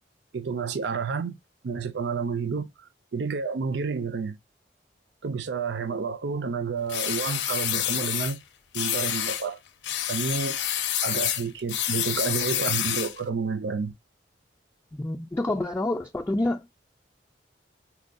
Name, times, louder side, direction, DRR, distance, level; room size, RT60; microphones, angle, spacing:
voice 1, 0.3-1.4 1.6-2.7 3.1-4.4 5.2-8.4 8.7-9.6 10.1-10.6 11.0-13.9, right 5 dB, 70° right, 0.5 m, -30 dB
sound 1, 6.9-8.4 8.7-9.5 9.8-13.2, left 11 dB, 80° left, 0.5 m, -28 dB
voice 2, 14.9-16.7, left 2 dB, 15° left, 0.4 m, -28 dB
4.4 x 2.3 x 2.5 m
head